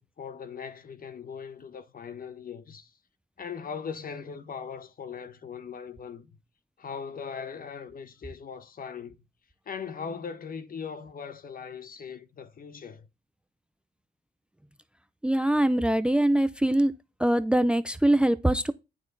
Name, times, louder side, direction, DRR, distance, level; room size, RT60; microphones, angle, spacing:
voice 1, 0.0-2.9 3.4-6.4 6.8-9.3 9.6-13.1, left 6 dB, 45° left, 1.2 m, -39 dB
voice 2, 15.2-16.9 17.2-18.7, right 1 dB, 5° right, 0.6 m, -23 dB
9.4 x 6.2 x 4.0 m
cardioid pair, 90°, 20 cm